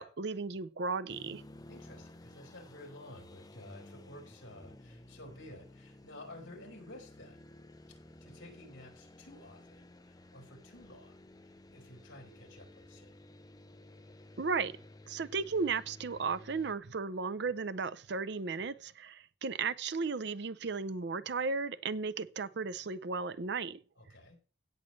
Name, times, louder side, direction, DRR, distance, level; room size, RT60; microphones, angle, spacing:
voice 1, 0.0-1.4 14.4-14.8 15.1-23.8, right 4 dB, 55° right, 0.5 m, -35 dB
sound 1, 1.1-16.7, left 1 dB, 20° left, 0.6 m, -54 dB
voice 2, 1.7-7.5 7.9-13.2 24.0-24.4, left 1 dB, 65° left, 4.4 m, -52 dB
17.0 x 7.4 x 3.2 m
head